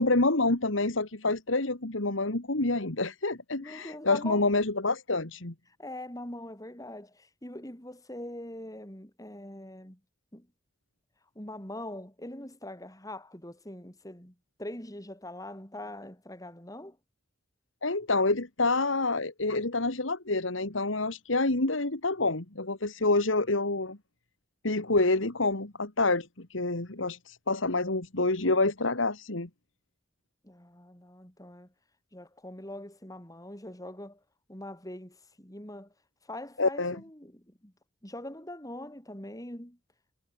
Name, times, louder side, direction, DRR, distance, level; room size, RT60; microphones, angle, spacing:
voice 1, 0.0-5.5 17.8-24.0 24.6-29.5 36.6-37.0, left 2 dB, 90° left, 2.5 m, -27 dB
voice 2, 3.6-4.5 5.8-10.0 10.3-10.5 11.3-17.0 30.4-31.7 32.1-34.2 34.5-35.9 36.2-37.7 38.0-39.8, left 1 dB, 20° left, 4.3 m, -43 dB
head